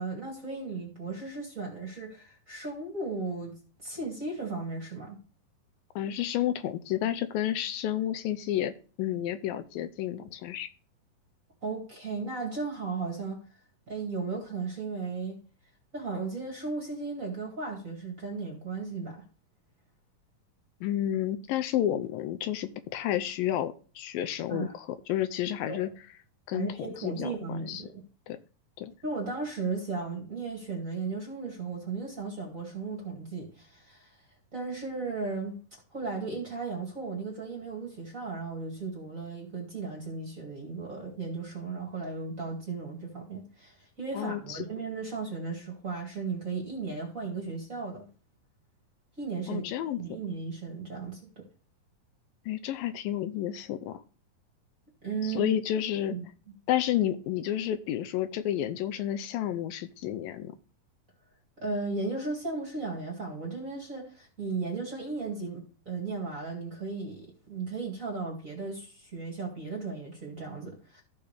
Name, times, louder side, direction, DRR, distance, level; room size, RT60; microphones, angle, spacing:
voice 1, 0.0-3.5 3.8-5.2 11.6-13.4 13.9-15.4 15.9-19.2 24.5-24.7 25.7-25.9 26.5-28.0 29.0-34.2 34.5-35.6 35.9-48.1 49.2-49.7 50.0-51.5 55.0-55.5 56.1-56.3 61.6-71.0, right 4 dB, 30° right, 2.0 m, -35 dB
voice 2, 6.0-8.7 9.0-10.7 20.8-25.9 26.5-27.3 27.6-27.8 28.3-28.4 28.8-28.9 44.1-44.6 49.5-50.0 52.5-54.0 55.2-56.2 56.7-60.5, left 11 dB, 85° left, 2.3 m, -31 dB
14.5 x 5.6 x 3.4 m
omnidirectional pair, 4.1 m